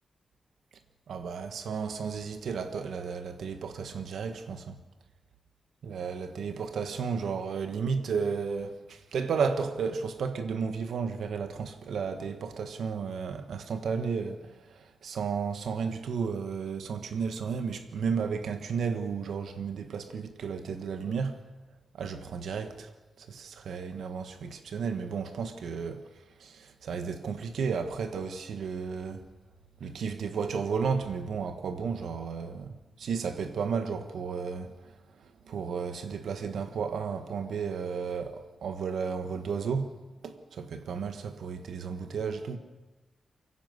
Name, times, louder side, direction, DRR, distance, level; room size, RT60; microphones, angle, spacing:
voice 1, 1.1-4.8 5.8-21.4 21.9-22.9 23.2-29.3 29.8-40.0 40.2-42.6, right 5 dB, 85° right, 1.5 m, -33 dB
24.0 x 16.5 x 8.0 m
wide cardioid pair, 180°, 0 cm